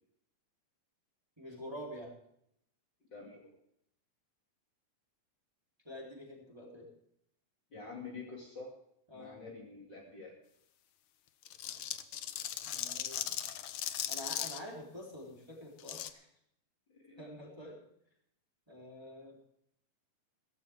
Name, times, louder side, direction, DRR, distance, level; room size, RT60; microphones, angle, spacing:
voice 1, 1.4-2.1 5.8-6.9 9.1-9.4 12.6-13.4 14.1-16.3 17.2-17.8 18.7-19.4, equal, 10° right, -3 dB, 3.4 m, -47 dB
voice 2, 3.1-3.4 7.7-8.7 9.1-10.4 16.9-17.3, left 4 dB, 40° left, -2 dB, 2.9 m, -47 dB
sound 1, 11.4-14.6 15.8-16.1, left 11 dB, 75° left, 1.2 m, -38 dB
17.0 x 15.5 x 3.6 m, 0.74 s
omnidirectional pair, 3.4 m